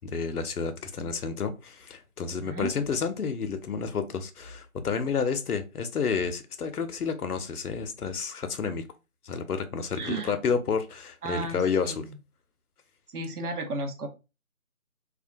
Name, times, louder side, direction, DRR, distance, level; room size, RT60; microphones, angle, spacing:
voice 1, 0.0-8.8 9.2-12.0, left 5 dB, 75° left, 0.6 m, -30 dB
voice 2, 10.0-10.4 11.2-12.0 13.1-14.1, right 2 dB, 80° right, 0.7 m, -33 dB
2.3 x 2.1 x 2.6 m
figure-of-eight pair, 180°, 45 cm